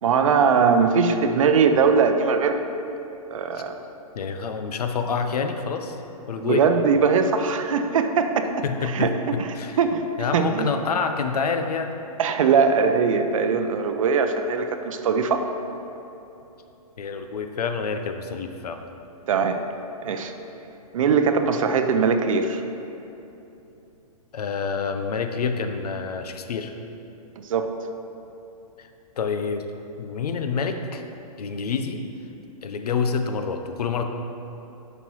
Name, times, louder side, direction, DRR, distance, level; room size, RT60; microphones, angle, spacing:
voice 1, 0.0-2.6 3.3-3.8 6.4-8.5 8.9-10.7 12.2-15.5 19.3-19.6 20.0-20.3 20.9-22.6 27.4-27.7, right 5 dB, 60° right, 7 dB, 0.6 m, -21 dB
voice 2, 4.1-6.0 6.3-6.7 8.6-9.8 10.2-12.0 17.0-18.9 24.3-26.7 28.8-28.9 29.2-29.7 30.0-31.1 31.4-32.0 32.6-34.0, left 5 dB, 85° left, 6 dB, 0.7 m, -27 dB
9.3 x 5.9 x 3.1 m, 2.9 s
hypercardioid pair, 165°, 19 cm